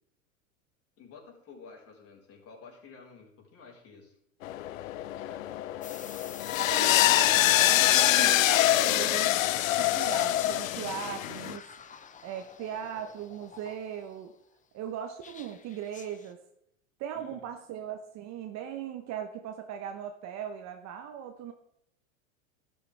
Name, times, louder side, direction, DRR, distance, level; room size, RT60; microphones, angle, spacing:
voice 1, 1.0-4.2 5.0-5.6 17.1-17.4, left 5 dB, 35° left, -1 dB, 4.8 m, -51 dB
sound 1, 4.4-11.6, left 15 dB, 75° left, 0.6 m, -25 dB
sound 2, 5.8-14.2 15.2-16.3, left 7 dB, 20° left, 0.8 m, -46 dB
voice 2, 6.6-9.4 9.7-14.3 14.7-16.4 17.0-21.5, right 9 dB, 40° right, 6 dB, 1.2 m, -39 dB
12.5 x 12.0 x 3.5 m, 0.75 s
hypercardioid pair, 105°, 40 cm